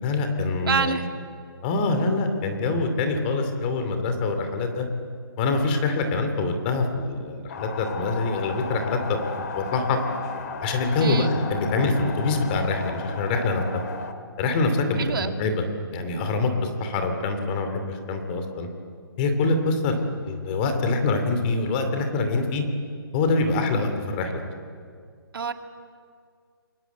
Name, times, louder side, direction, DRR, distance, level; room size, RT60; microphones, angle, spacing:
voice 1, 0.0-1.0 1.6-4.8 5.4-10.0 10.6-13.8 14.4-15.6 15.9-18.7 19.2-22.6 23.1-24.5, left 3 dB, 25° left, 6 dB, 2.8 m, -25 dB
voice 2, 0.7-1.1 11.0-11.3 15.0-15.4 25.3-25.5, right 5 dB, 60° right, 6 dB, 2.2 m, -26 dB
sound 1, 7.5-14.1, left 4 dB, 45° left, 2.2 m, -35 dB
29.0 x 22.5 x 8.4 m, 2.1 s
hypercardioid pair, 165°, 13 cm